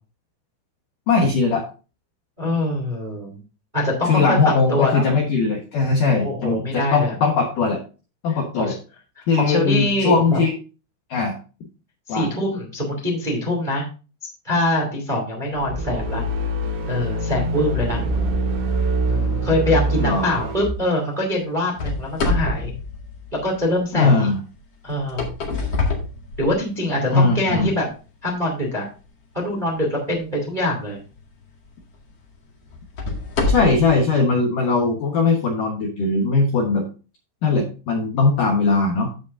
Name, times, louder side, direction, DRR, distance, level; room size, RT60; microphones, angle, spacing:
voice 1, 1.1-1.7 4.1-7.8 8.2-8.7 9.3-10.5 11.1-11.3 12.1-12.3 20.0-20.3 23.9-24.4 27.1-27.7 33.5-36.8 37.4-39.1, left 4 dB, 70° left, 1 dB, 2.0 m, -19 dB
voice 2, 2.4-3.4 3.7-5.0 6.1-7.1 8.3-8.7 9.1-10.4 12.1-13.8 14.4-16.2 16.9-18.0 19.1-22.7 23.3-24.3 24.8-25.3 26.4-27.9 28.2-28.9 29.3-31.0, left 1 dB, 20° right, 0 dB, 1.3 m, -24 dB
sound 1, 15.5-20.8, right 1 dB, 65° right, 4.8 m, -24 dB
sound 2, 21.8-23.8 24.9-26.9 27.5-27.6 28.3-28.4 31.0-31.2 31.7-31.8 32.7-33.9, left 3 dB, 50° left, 2.0 m, -25 dB
15.5 x 5.2 x 2.6 m, 0.33 s
omnidirectional pair, 5.5 m